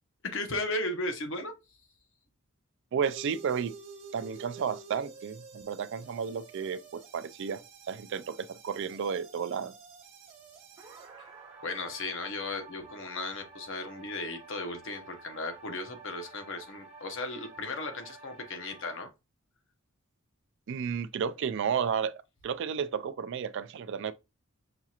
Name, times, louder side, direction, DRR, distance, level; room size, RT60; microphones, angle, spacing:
voice 1, 0.2-1.5 11.2-11.3 11.6-19.1, left 2 dB, 65° left, 0.9 m, -36 dB
voice 2, 2.9-3.7 4.1-7.6 7.9-9.7 20.7-24.1, right 7 dB, 60° right, 0.4 m, -32 dB
sound 1, 3.0-19.0, right 4 dB, 30° right, 1.3 m, -50 dB
5.9 x 2.8 x 2.4 m
head